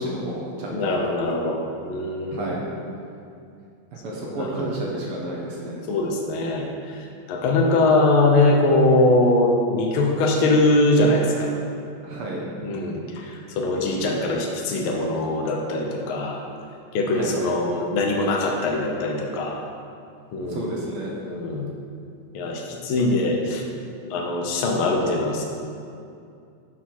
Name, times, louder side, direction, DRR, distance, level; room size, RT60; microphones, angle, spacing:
voice 1, 0.0-1.0 2.3-2.6 4.0-5.8 12.0-12.4 17.1-17.5 20.5-21.3, right 1 dB, 65° right, -3 dB, 1.4 m, -31 dB
voice 2, 0.7-2.5 4.2-4.7 5.9-11.5 12.6-16.4 16.9-19.6 20.3-20.6 21.2-21.7 22.3-23.6 24.1-25.4, left 2 dB, 70° left, 1 dB, 1.2 m, -22 dB
11.0 x 4.5 x 4.5 m, 2.4 s
omnidirectional pair, 3.5 m